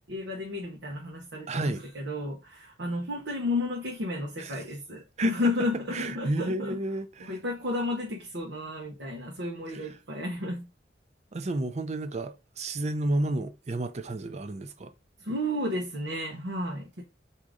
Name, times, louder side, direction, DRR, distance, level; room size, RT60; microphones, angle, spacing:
voice 1, 0.1-6.8 7.2-10.7 15.2-17.0, left 2 dB, 90° right, 1.0 m, -32 dB
voice 2, 1.5-1.8 4.4-4.6 5.2-5.3 5.9-7.4 9.7-9.8 11.3-14.9, right 2 dB, 40° right, 0.5 m, -31 dB
3.7 x 2.8 x 4.7 m
head